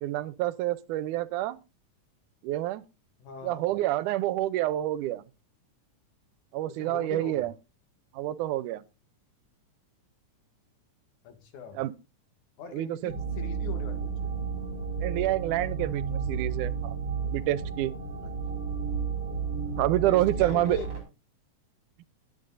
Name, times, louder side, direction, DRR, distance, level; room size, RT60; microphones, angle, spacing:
voice 1, 0.0-1.6 2.4-2.8 3.4-5.3 6.5-7.5 8.1-8.8 11.7-11.9 12.7-13.1 15.0-16.9 17.3-17.9 19.8-20.9, right 15 dB, 90° right, 2.2 m, -28 dB
voice 2, 3.2-3.7 6.7-7.5 11.2-11.8 12.6-14.4 18.2-18.4 20.1-20.9, left 7 dB, 80° left, 3.5 m, -42 dB
sound 1, 13.1-21.0, right 6 dB, 35° right, 4.8 m, -32 dB
20.5 x 8.1 x 2.6 m
omnidirectional pair, 3.5 m